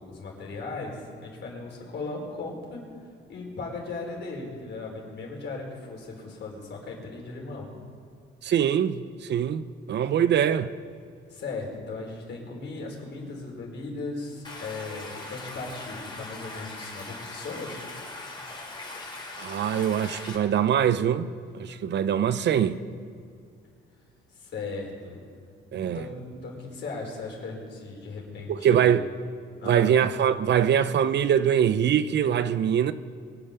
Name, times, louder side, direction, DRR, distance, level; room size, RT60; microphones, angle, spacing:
voice 1, 0.0-2.8 3.3-7.7 11.3-17.8 24.4-25.2 25.8-29.1 29.6-29.9, left 3 dB, 65° left, 4.9 m, -37 dB
voice 2, 8.4-9.0 9.3-10.7 19.4-21.3 21.6-22.8 25.7-26.0 28.5-29.0 29.6-32.9, right 9 dB, 60° right, 0.7 m, -23 dB
Stream, 14.4-20.4, left 2 dB, 25° left, 2.8 m, -40 dB
23.0 x 8.5 x 6.9 m
cardioid pair, 90°, 20 cm